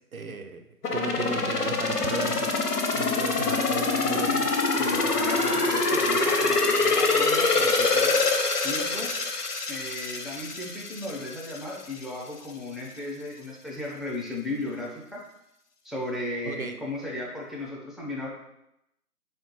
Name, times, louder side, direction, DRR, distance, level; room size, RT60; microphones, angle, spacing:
voice 1, 0.1-0.6 0.9-2.6 2.9-4.5 16.5-16.8, right 3 dB, 65° right, 6 dB, 0.5 m, -34 dB
sound 1, 0.8-11.6 12.0-12.1, left 3 dB, 90° left, 0.7 m, -25 dB
voice 2, 4.8-8.2 8.6-9.1 9.7-15.2 15.8-18.3, left 1 dB, ahead, -4 dB, 0.4 m, -35 dB
4.2 x 2.1 x 2.9 m, 0.84 s
figure-of-eight pair, 170°, 46 cm